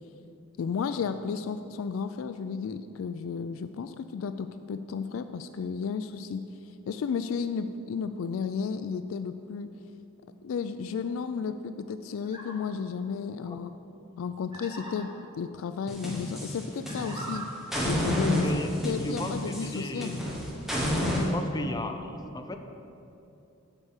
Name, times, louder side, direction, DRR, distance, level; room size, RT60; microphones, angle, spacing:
voice 1, 0.6-6.4 6.9-9.7 10.4-13.7 14.2-15.1 15.4-17.4 17.8-18.5 18.8-20.2, left 6 dB, 75° left, 10 dB, 0.3 m, -33 dB
sound 1, 12.2-12.5 14.5-15.0 16.8-17.4, right 2 dB, 20° right, 1.5 m, -41 dB
sound 2, 15.9-17.3 17.7-21.3, left 1 dB, ahead, 1.3 m, -30 dB
voice 2, 18.4-20.1 21.1-22.6, left 1 dB, 20° left, 6 dB, 0.5 m, -35 dB
8.1 x 5.4 x 7.2 m, 2.8 s
head